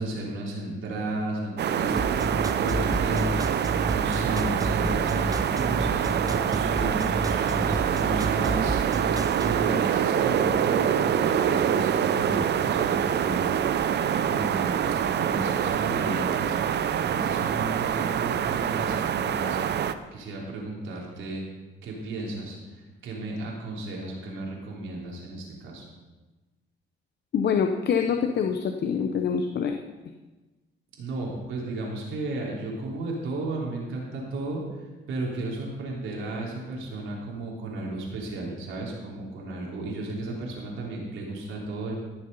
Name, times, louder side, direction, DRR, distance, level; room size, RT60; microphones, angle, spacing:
voice 1, 0.0-13.4 14.1-19.6 20.1-21.4 21.8-25.9 31.0-42.0, right 2 dB, 80° right, -2 dB, 3.5 m, -34 dB
sound 1, 1.6-19.9, right 9 dB, 60° right, 0.7 m, -25 dB
sound 2, 2.0-9.6, right 2 dB, 20° right, 0.9 m, -30 dB
voice 2, 27.3-29.8, left 6 dB, 55° left, 5 dB, 0.8 m, -25 dB
15.0 x 6.7 x 5.5 m, 1.2 s
cardioid pair, 90°, 20 cm